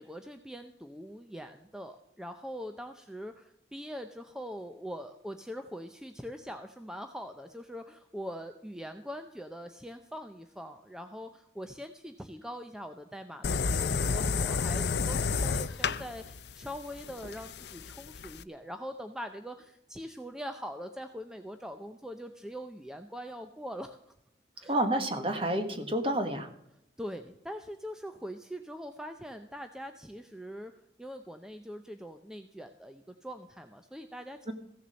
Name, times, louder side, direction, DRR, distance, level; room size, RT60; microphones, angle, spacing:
voice 1, 0.0-24.0 24.6-24.7 27.0-30.7 31.0-34.4, equal, 5° right, 7 dB, 0.6 m, -42 dB
sound 1, 13.4-18.4, left 5 dB, 70° left, 0.6 m, -31 dB
voice 2, 24.6-26.5 34.5-34.6, right 1 dB, 30° right, 7 dB, 1.4 m, -29 dB
15.0 x 7.2 x 6.3 m, 0.81 s
head